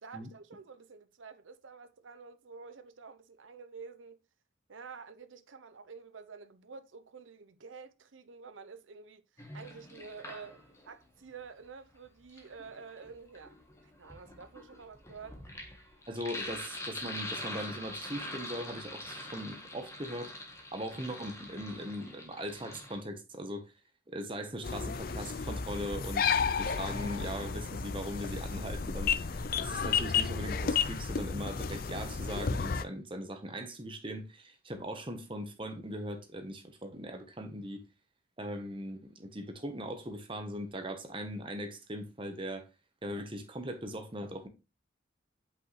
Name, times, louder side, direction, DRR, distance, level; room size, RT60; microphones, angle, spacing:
voice 1, 0.0-4.2 4.7-13.6 13.8-15.4, right 5 dB, 80° right, 0.7 m, -49 dB
Sink (filling or washing), 9.4-10.9 12.1-23.0, left 1 dB, 15° left, 1.3 m, -44 dB
voice 2, 16.1-23.7 24.1-37.8 38.4-42.7 43.0-44.5, equal, 25° right, 1.1 m, -40 dB
sound 1, 24.6-32.8, left 6 dB, 50° left, 0.4 m, -32 dB
8.3 x 5.5 x 3.2 m
head